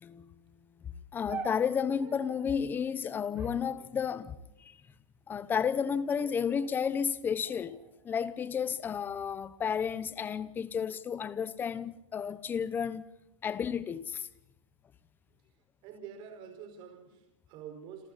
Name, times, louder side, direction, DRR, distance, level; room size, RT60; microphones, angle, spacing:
voice 1, 0.0-0.3 0.8-4.8 5.3-7.8 8.0-13.1 13.4-14.3, left 7 dB, 10° left, 0.8 m, -32 dB
sound 1, 1.3-2.5 3.3-4.6 5.3-5.8 6.2-6.7 7.4-8.7 9.5-10.0, right 6 dB, 10° right, 3.6 m, -47 dB
voice 2, 15.8-18.1, right 7 dB, 30° right, 4.9 m, -47 dB
27.5 x 27.5 x 4.2 m
hypercardioid pair, 160°, 16 cm